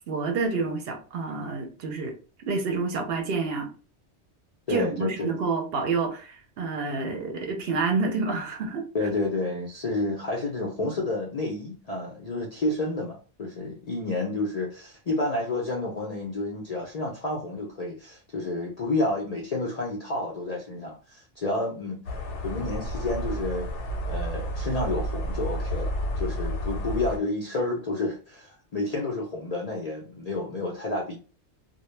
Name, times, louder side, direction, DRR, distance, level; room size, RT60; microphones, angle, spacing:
voice 1, 0.1-2.1 2.5-3.7 4.7-9.1, right 4 dB, 65° right, 0.8 m, -28 dB
voice 2, 4.7-5.4 8.9-22.0 22.4-23.7 24.1-31.2, left 2 dB, 55° left, 0.4 m, -30 dB
sound 1, 22.1-27.2, equal, 85° left, 0.9 m, -31 dB
2.1 x 2.1 x 3.0 m
omnidirectional pair, 1.2 m